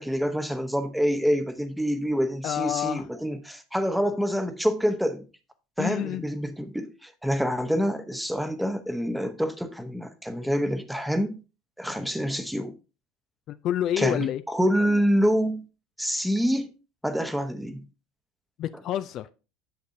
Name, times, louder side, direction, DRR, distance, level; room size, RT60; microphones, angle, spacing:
voice 1, 0.0-5.3 5.8-11.4 11.8-12.8 14.0-15.6 16.0-16.7 17.0-17.8, equal, ahead, 0.9 m, -26 dB
voice 2, 2.4-3.1 5.8-6.2 13.5-14.4 18.6-19.3, left 11 dB, 55° left, 0.4 m, -28 dB
8.3 x 6.4 x 2.7 m
hypercardioid pair, 80°, 0 cm